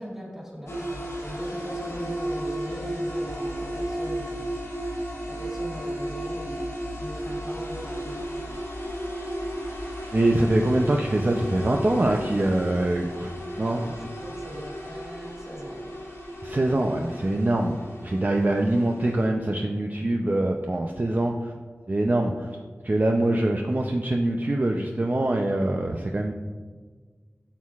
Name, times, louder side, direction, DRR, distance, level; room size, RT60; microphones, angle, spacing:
voice 1, 0.0-6.7 7.0-8.6 13.0-16.1, equal, 10° right, -4 dB, 2.4 m, -41 dB
sound 1, 0.7-19.3, equal, 85° left, 1.9 m, -34 dB
voice 2, 10.1-13.3 13.6-13.9 16.4-21.5 21.9-22.5 22.8-26.3, right 1 dB, 40° right, 1 dB, 0.5 m, -24 dB
11.0 x 6.4 x 2.4 m, 1.5 s
wide cardioid pair, 55°, 5 cm